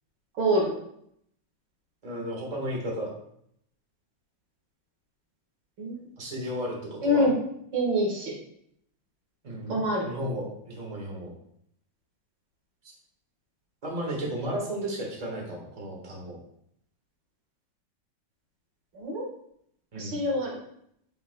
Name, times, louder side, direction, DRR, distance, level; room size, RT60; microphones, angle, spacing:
voice 1, 0.4-0.8 5.8-6.0 7.0-7.3 7.7-8.3 9.7-10.1 18.9-19.2 19.9-20.6, equal, 90° right, -2 dB, 2.4 m, -25 dB
voice 2, 2.0-3.1 6.2-7.3 9.4-11.3 13.8-16.4 19.9-20.2, equal, 25° right, -2 dB, 1.5 m, -34 dB
9.5 x 4.6 x 2.2 m, 0.71 s
omnidirectional pair, 2.0 m